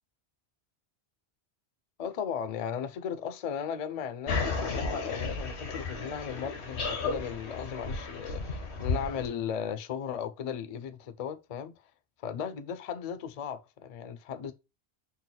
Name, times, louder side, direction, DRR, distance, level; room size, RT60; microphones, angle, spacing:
voice 1, 2.0-11.7 12.2-14.5, left 8 dB, 55° left, 0.4 m, -36 dB
sound 1, 4.3-9.3, left 4 dB, 85° left, 1.1 m, -33 dB
3.9 x 2.2 x 3.7 m
omnidirectional pair, 1.1 m